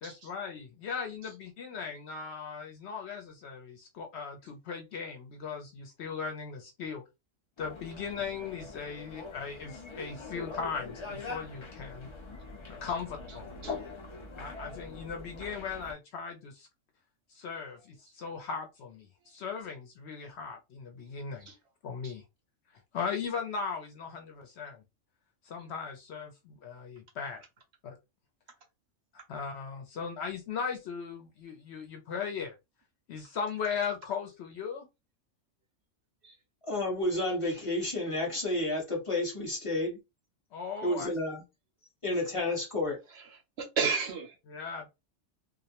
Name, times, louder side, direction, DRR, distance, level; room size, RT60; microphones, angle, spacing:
voice 1, 0.0-7.0 7.6-12.1 12.7-13.6 14.4-16.7 17.3-21.5 21.8-22.2 22.9-24.8 25.5-27.4 27.8-28.0 29.3-32.5 33.1-34.9 40.5-41.2 44.5-44.9, left 6 dB, 65° left, 0.7 m, -38 dB
sound 1, 7.6-15.9, left 3 dB, 50° left, 0.3 m, -43 dB
voice 2, 36.6-40.0 40.8-41.4 42.0-43.0, left 1 dB, 30° left, 0.8 m, -31 dB
voice 3, 43.1-44.4, right 5 dB, 65° right, 0.7 m, -33 dB
2.3 x 2.0 x 2.8 m
omnidirectional pair, 1.3 m